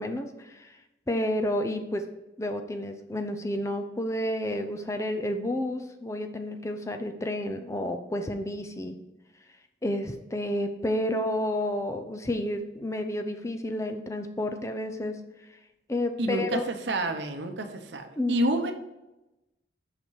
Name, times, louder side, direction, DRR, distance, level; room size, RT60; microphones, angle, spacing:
voice 1, 0.0-2.1 2.4-9.0 9.3-16.6 18.2-18.4, left 1 dB, 15° left, 6 dB, 0.5 m, -31 dB
voice 2, 16.2-18.7, right 1 dB, 75° right, 6 dB, 0.8 m, -29 dB
5.9 x 5.5 x 4.7 m, 0.98 s
head